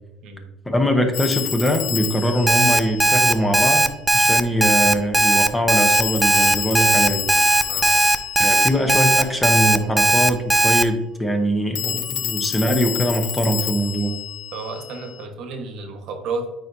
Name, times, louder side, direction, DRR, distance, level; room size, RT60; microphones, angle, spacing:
voice 1, 0.7-3.9 4.1-7.3 8.4-14.1, equal, 10° left, 5 dB, 0.8 m, -22 dB
Telephone, 1.1-3.8 5.9-9.6 11.8-15.2, left 12 dB, 65° left, 0.5 m, -30 dB
Alarm, 2.5-10.8, right 1 dB, 5° right, 0.3 m, -17 dB
voice 2, 7.7-8.0 14.5-16.5, right 3 dB, 65° right, 5 dB, 1.2 m, -32 dB
9.0 x 4.1 x 2.6 m, 0.92 s
cardioid pair, 135°, 0 cm